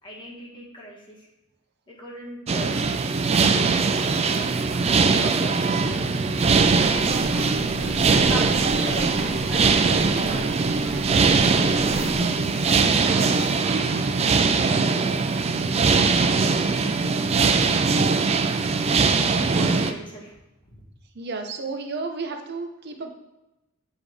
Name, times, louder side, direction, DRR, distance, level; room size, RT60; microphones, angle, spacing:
voice 1, 0.0-1.3 1.9-2.9 3.5-6.2 6.9-11.7 12.0-13.3 13.8-16.2 16.8-17.2 19.5-20.4 20.6-20.8, equal, 25° left, -3 dB, 1.4 m, -40 dB
sound 1, 2.5-19.9, right 4 dB, 30° right, 0.3 m, -21 dB
sound 2, 6.4-12.2, equal, 80° right, 1.9 m, -37 dB
voice 2, 16.9-17.2 21.1-23.1, right 4 dB, 50° right, 5 dB, 0.7 m, -33 dB
8.1 x 3.7 x 3.4 m, 0.97 s
head